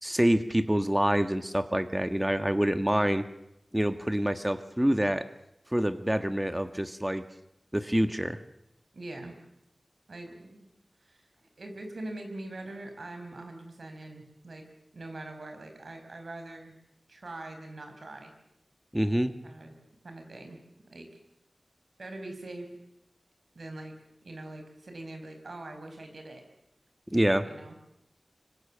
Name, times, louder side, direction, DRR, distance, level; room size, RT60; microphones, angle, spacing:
voice 1, 0.0-3.2 3.7-5.2 5.7-7.2 7.7-8.4 18.9-19.3 27.1-27.5, equal, 10° right, 10 dB, 1.7 m, -26 dB
voice 2, 8.9-9.3 10.1-10.7 11.0-11.3 11.6-14.6 14.9-16.8 17.1-18.3 19.4-19.8 20.0-20.6 20.9-21.1 22.0-22.7 23.5-24.0 24.2-26.4 27.4-27.7, right 2 dB, 90° right, 5 dB, 5.4 m, -43 dB
25.0 x 25.0 x 7.6 m, 0.83 s
wide cardioid pair, 55°, 0 cm